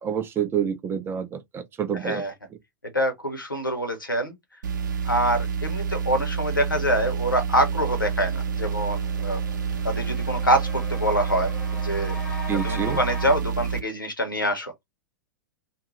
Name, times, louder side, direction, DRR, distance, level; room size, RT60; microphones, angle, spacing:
voice 1, 0.0-2.2 12.5-13.0, right 8 dB, 20° right, 0.6 m, -28 dB
voice 2, 2.0-2.3 2.9-4.4 5.0-9.4 9.8-12.1 12.6-14.8, equal, 90° left, 1.1 m, -25 dB
sound 1, 4.6-13.8, right 6 dB, 65° right, 0.8 m, -28 dB
sound 2, 8.1-13.3, left 1 dB, 5° left, 1.1 m, -40 dB
2.6 x 2.4 x 3.2 m
figure-of-eight pair, 95°, 11 cm